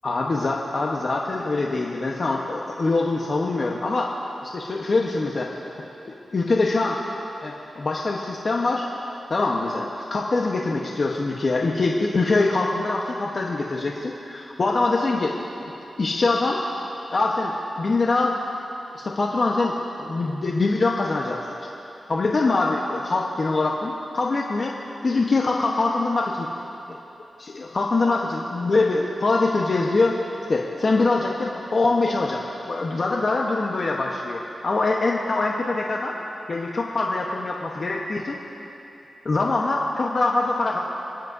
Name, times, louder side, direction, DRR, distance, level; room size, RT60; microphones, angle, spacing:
voice 1, 0.0-4.1 4.4-7.0 7.4-8.9 9.3-15.3 15.6-15.7 16.0-16.6 17.1-18.3 18.9-21.7 22.1-24.7 25.0-26.5 26.9-27.0 27.4-30.2 30.5-32.4 32.7-36.1 36.5-38.4 39.2-40.8, left 3 dB, 55° left, -1 dB, 1.1 m, -24 dB
29.0 x 10.5 x 2.8 m, 3.0 s
cardioid pair, 55°, 0 cm